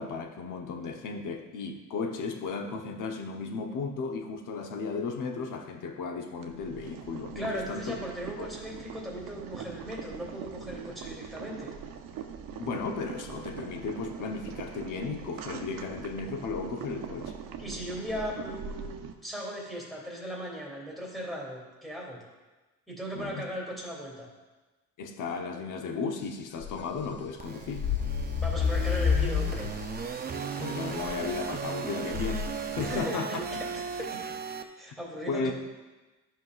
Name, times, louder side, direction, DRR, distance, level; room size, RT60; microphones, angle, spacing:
voice 1, 0.0-8.0 8.4-8.5 12.5-17.3 23.1-23.5 25.0-27.9 30.6-32.5 32.8-33.4 35.3-35.5, left 4 dB, 65° left, 4 dB, 0.9 m, -35 dB
Boiling, 6.4-19.1, right 7 dB, 75° right, 0.7 m, -42 dB
voice 2, 7.3-11.7 17.6-19.0 19.2-22.2 22.9-24.3 28.3-29.7 32.8-34.2 34.8-35.5, equal, ahead, -4 dB, 2.5 m, -37 dB
sound 1, 26.6-27.4 27.6-30.1 30.4-31.2 32.1-33.0, left 7 dB, 35° left, 0.4 m, -30 dB
sound 2, 27.4-34.6, right 5 dB, 30° right, 0.5 m, -36 dB
12.5 x 5.7 x 2.4 m, 1.2 s
cardioid pair, 110°, 34 cm